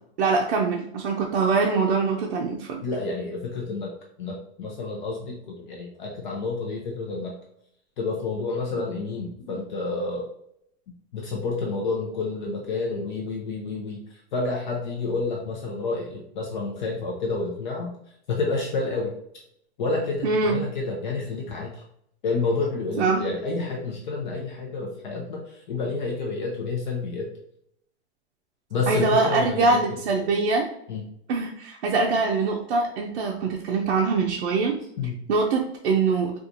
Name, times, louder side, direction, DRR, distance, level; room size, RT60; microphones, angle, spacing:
voice 1, 0.2-2.8 20.2-20.6 23.0-23.2 28.9-30.7 31.3-34.8 35.3-36.3, right 4 dB, 60° right, -1 dB, 0.6 m, -23 dB
voice 2, 2.8-3.9 4.2-7.3 8.0-10.3 11.1-17.9 18.3-19.1 19.8-21.8 22.2-27.3 28.7-29.8 30.9-31.0 35.0-35.2, left 3 dB, 45° left, -1 dB, 0.6 m, -29 dB
4.3 x 2.4 x 2.5 m, 0.72 s
supercardioid pair, 180°, 33 cm